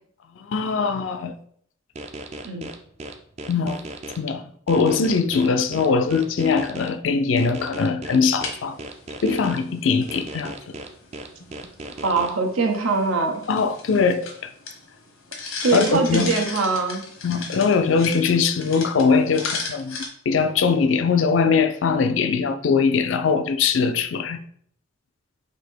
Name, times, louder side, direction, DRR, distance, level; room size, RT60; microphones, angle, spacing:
voice 1, 0.5-1.3 3.5-3.8 4.2-8.8 9.2-10.7 13.5-14.5 15.7-16.3 17.2-20.0 20.3-24.4, left 5 dB, 65° left, 0.4 m, -21 dB
sound 1, 2.0-4.2 4.7-6.9 7.4-9.6 10.1-12.3, right 2 dB, 35° right, 0.4 m, -36 dB
sound 2, 8.2-20.1, left 4 dB, 90° left, 1.1 m, -37 dB
voice 2, 12.0-13.4 15.6-17.0, right 4 dB, 90° right, 0.8 m, -22 dB
4.2 x 2.8 x 4.4 m
head